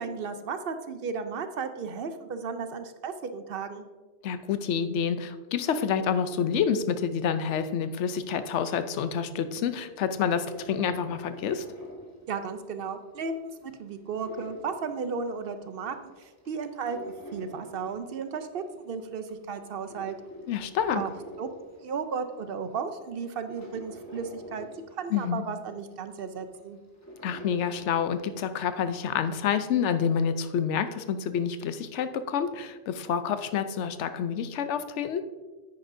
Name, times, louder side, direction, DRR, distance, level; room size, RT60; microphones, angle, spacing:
voice 1, 0.0-3.9 12.3-20.2 20.9-21.1 21.4-24.7 25.0-26.8, right 5 dB, 60° right, 9 dB, 0.8 m, -34 dB
voice 2, 4.2-11.6 20.5-21.0 25.1-25.4 27.2-35.2, left 7 dB, 80° left, 11 dB, 0.9 m, -28 dB
sound 1, 10.3-12.9 13.3-15.6 16.0-18.6 19.1-22.2 22.7-22.8 23.2-28.4 28.7-28.8, equal, 15° left, 1.6 m, -46 dB
9.7 x 9.2 x 2.6 m, 1.3 s
omnidirectional pair, 1.2 m